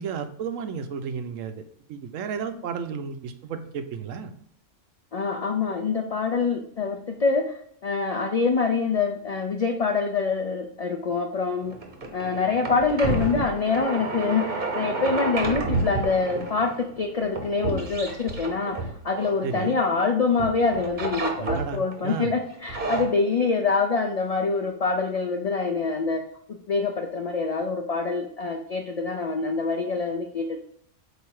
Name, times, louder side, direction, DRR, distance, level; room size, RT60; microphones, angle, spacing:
voice 1, 0.0-1.6 1.9-4.3 19.4-19.8 21.4-22.3, right 6 dB, 90° right, 9 dB, 1.0 m, -33 dB
voice 2, 5.1-11.8 12.1-26.2 26.5-30.6, left 4 dB, 55° left, 4 dB, 0.4 m, -25 dB
sound 1, 11.6-20.0 20.4-22.0 22.5-23.0, right 3 dB, 40° right, 1.0 m, -30 dB
8.0 x 2.7 x 4.7 m, 0.64 s
omnidirectional pair, 1.3 m